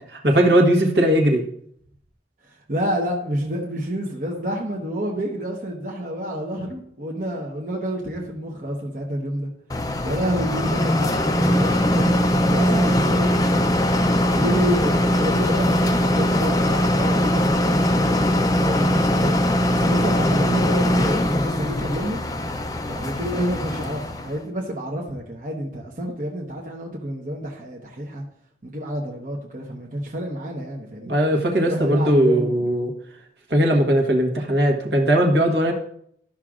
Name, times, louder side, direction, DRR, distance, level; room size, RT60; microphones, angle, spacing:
voice 1, 0.1-1.4 31.1-32.9 33.5-35.7, right 1 dB, 65° right, 2 dB, 1.3 m, -19 dB
voice 2, 2.4-9.5 10.0-12.1 12.5-13.6 14.3-19.4 19.7-22.3 22.9-28.2 28.6-31.2 31.6-32.6, equal, 45° right, -1 dB, 1.0 m, -29 dB
sound 1, 9.7-24.4, left 1 dB, 20° left, 0.5 m, -21 dB
13.0 x 5.9 x 2.5 m, 0.67 s
head